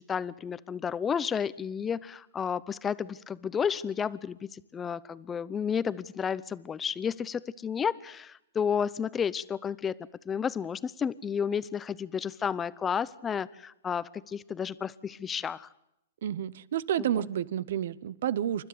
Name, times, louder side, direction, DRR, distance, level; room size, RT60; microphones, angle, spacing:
voice 1, 0.0-10.0 10.3-15.7 17.0-17.1, left 7 dB, 15° left, 18 dB, 0.7 m, -32 dB
voice 2, 16.2-18.7, right 10 dB, 65° right, 20 dB, 0.8 m, -30 dB
28.5 x 12.5 x 8.4 m, 0.82 s
hypercardioid pair, 135°, 0 cm